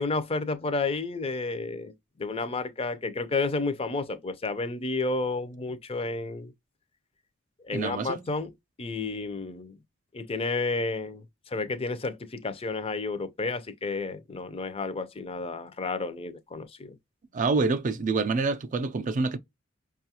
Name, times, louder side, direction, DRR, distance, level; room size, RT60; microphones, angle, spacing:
voice 1, 0.0-6.5 7.6-8.5 8.8-9.8 10.1-16.9, left 3 dB, 30° left, 0.5 m, -31 dB
voice 2, 7.7-8.2 17.3-19.4, right 4 dB, 40° right, 0.4 m, -27 dB
5.3 x 2.3 x 2.8 m
head